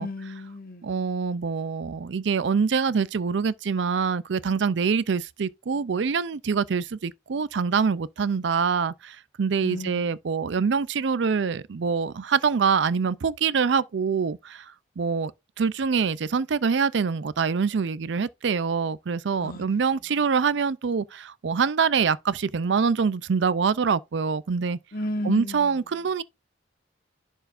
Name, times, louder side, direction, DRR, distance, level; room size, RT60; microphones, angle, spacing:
voice 1, 0.0-1.0 9.6-10.2 19.4-19.8 24.9-25.8, left 1 dB, 50° left, 1.4 m, -34 dB
voice 2, 0.8-15.3 15.6-24.8 25.3-26.2, right 5 dB, 70° right, 0.4 m, -25 dB
11.0 x 4.4 x 2.5 m
head